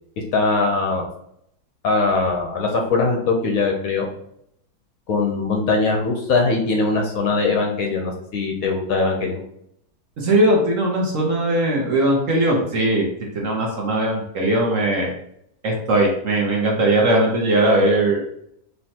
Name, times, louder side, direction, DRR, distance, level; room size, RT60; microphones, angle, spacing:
voice 1, 0.3-1.1 1.8-4.1 5.1-9.4, left 3 dB, 65° left, 1 dB, 1.0 m, -21 dB
voice 2, 10.2-13.1 13.3-15.1 15.6-18.2, right 1 dB, 55° right, -1 dB, 1.1 m, -19 dB
4.4 x 3.2 x 2.8 m, 0.73 s
omnidirectional pair, 1.8 m